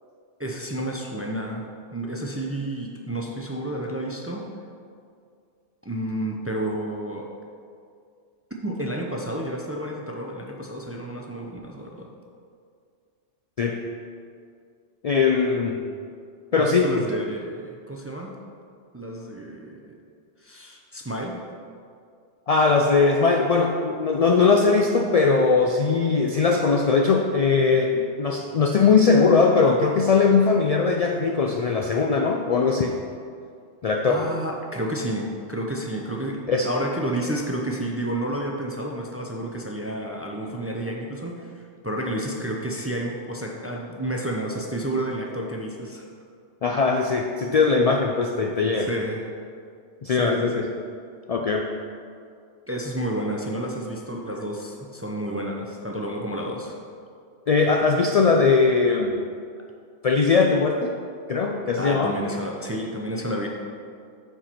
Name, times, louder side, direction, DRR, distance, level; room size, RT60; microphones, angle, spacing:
voice 1, 0.4-1.7 1.9-4.5 5.8-7.3 8.6-12.1 16.6-18.4 18.9-19.9 20.4-21.4 34.0-46.0 48.8-49.3 50.0-50.7 52.7-56.8 61.8-63.5, right 1 dB, 20° right, 0 dB, 0.4 m, -30 dB
voice 2, 15.0-15.8 16.5-16.9 22.5-32.9 33.8-34.2 36.5-36.7 46.6-48.9 50.0-50.7 51.3-51.7 57.5-59.1 60.0-61.0 61.3-62.2, left 4 dB, 80° left, 2 dB, 0.3 m, -20 dB
9.0 x 4.5 x 4.4 m, 2.3 s
omnidirectional pair, 1.2 m